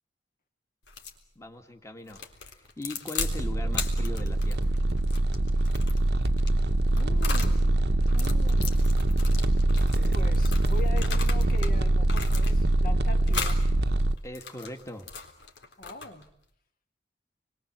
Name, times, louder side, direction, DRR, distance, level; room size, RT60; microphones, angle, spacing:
sound 1, 0.9-1.2 2.1-3.4 3.7-7.6 8.0-11.7 12.0-12.8 13.3-13.6 14.2-16.3, left 5 dB, 85° left, 3.7 m, -38 dB
voice 1, 1.4-4.7 14.2-15.1, left 1 dB, 15° left, 4 dB, 2.1 m, -40 dB
sound 2, 3.2-14.2, right 1 dB, 70° right, 1.0 m, -24 dB
voice 2, 6.9-9.0 10.1-13.6 15.8-16.3, left 2 dB, 55° left, 5 dB, 2.6 m, -42 dB
29.5 x 22.5 x 7.6 m, 0.69 s
head